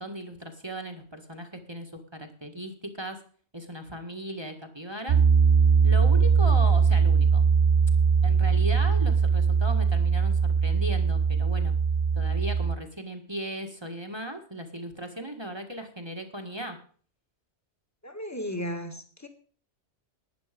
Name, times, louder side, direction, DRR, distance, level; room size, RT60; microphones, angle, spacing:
voice 1, 0.0-3.2 3.5-5.2 5.8-7.4 8.2-11.7 12.2-16.8, equal, 20° right, 5 dB, 1.8 m, -37 dB
Piano, 5.1-12.8, right 5 dB, 45° right, 0.8 m, -21 dB
voice 2, 18.0-19.3, equal, 15° left, 6 dB, 1.9 m, -35 dB
12.0 x 9.9 x 5.2 m, 0.43 s
omnidirectional pair, 1.2 m